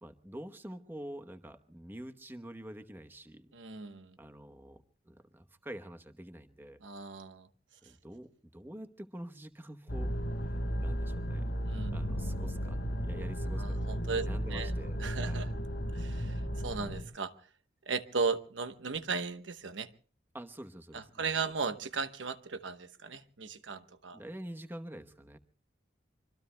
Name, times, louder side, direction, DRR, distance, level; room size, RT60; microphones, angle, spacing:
voice 1, 0.0-3.5 4.2-6.8 7.8-10.1 10.4-11.5 11.9-15.5 20.3-21.5 24.1-25.4, right 1 dB, 10° right, 8 dB, 1.0 m, -47 dB
voice 2, 3.5-4.2 6.8-7.5 11.6-12.0 13.6-14.7 15.0-15.6 15.9-17.5 17.9-19.9 20.9-24.2, right 4 dB, 80° right, 10 dB, 1.0 m, -36 dB
sound 1, 9.9-17.0, equal, 80° left, 3.4 m, -34 dB
26.0 x 24.5 x 2.2 m, 0.40 s
head